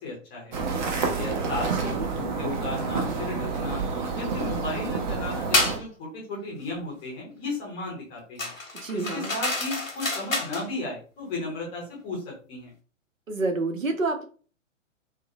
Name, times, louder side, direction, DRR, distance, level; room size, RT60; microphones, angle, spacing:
voice 1, 0.0-0.5 0.9-3.8 4.1-8.5 8.9-12.7, left 2 dB, 15° left, -2 dB, 0.5 m, -35 dB
sound 1, 0.5-5.8, right 4 dB, 40° right, 0.6 m, -29 dB
sound 2, 5.5-5.8 8.4-10.7, left 2 dB, 90° left, 0.9 m, -28 dB
voice 2, 8.7-9.4 13.3-14.2, right 3 dB, 85° right, 4 dB, 0.7 m, -28 dB
2.7 x 2.0 x 2.6 m, 0.39 s
figure-of-eight pair, 115°, 39 cm